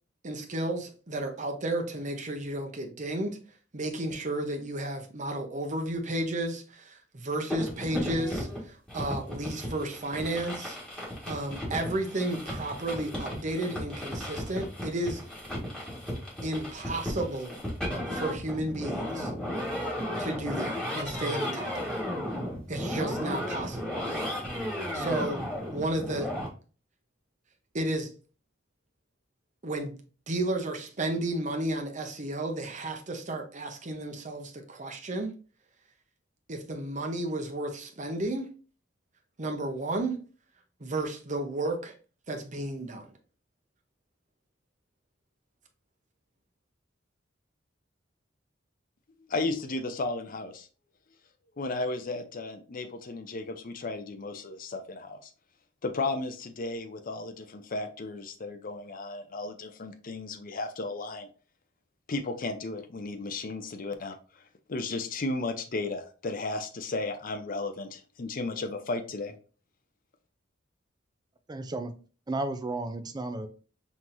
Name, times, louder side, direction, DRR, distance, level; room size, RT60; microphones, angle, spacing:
voice 1, 0.2-3.4 3.7-10.8 11.3-15.2 16.4-17.6 18.1-19.3 20.2-22.0 22.7-24.0 24.9-25.4 25.7-26.3 27.7-28.1 29.6-29.9 30.3-35.3 36.5-38.5 39.4-40.2 40.8-41.9 42.3-43.1, right 1 dB, 40° right, 4 dB, 0.8 m, -32 dB
sound 1, 7.5-26.5, left 1 dB, 5° left, 1.6 m, -34 dB
voice 2, 49.3-50.7 51.6-55.3 55.8-61.3 62.1-64.2 64.7-69.3, left 2 dB, 45° left, 6 dB, 0.6 m, -34 dB
voice 3, 71.5-71.9 72.3-73.5, right 2 dB, 20° right, 8 dB, 0.4 m, -33 dB
5.6 x 3.0 x 2.6 m, 0.38 s
head